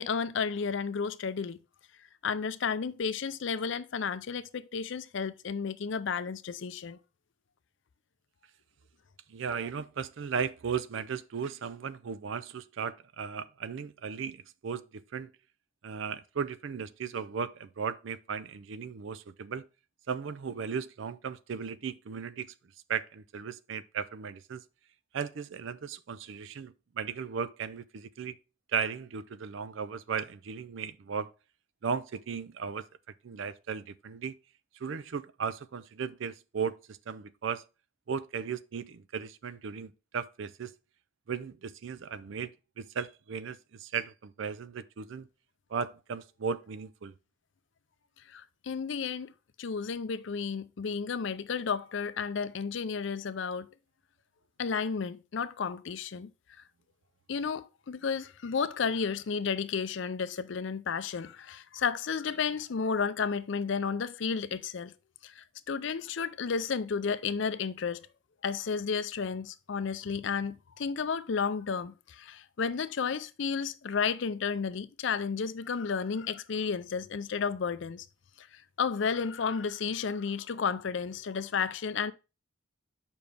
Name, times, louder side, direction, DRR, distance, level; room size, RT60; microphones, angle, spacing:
voice 1, 0.0-1.6 2.2-7.0 48.3-49.3 49.6-53.7 54.6-56.3 57.3-64.9 65.2-68.1 68.4-78.1 78.4-82.1, left 6 dB, 65° left, 0.5 m, -32 dB
voice 2, 9.3-15.3 15.8-19.7 20.1-22.5 22.9-24.6 25.1-28.4 28.7-31.3 31.8-32.8 33.2-34.4 34.8-37.6 38.1-40.7 41.3-42.5 42.8-45.3 45.7-47.1, right 6 dB, 65° right, 0.4 m, -36 dB
6.9 x 5.2 x 3.3 m
head